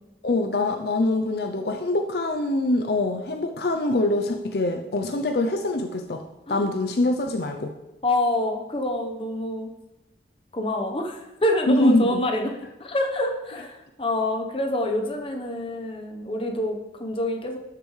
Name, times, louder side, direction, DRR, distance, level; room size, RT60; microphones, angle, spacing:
voice 1, 0.2-6.2 6.5-7.7 11.7-12.2, left 2 dB, 65° left, 5 dB, 0.5 m, -24 dB
voice 2, 8.0-9.7 10.5-12.5 12.8-17.6, left 1 dB, 30° left, 3 dB, 1.0 m, -26 dB
12.5 x 6.7 x 3.2 m, 0.98 s
head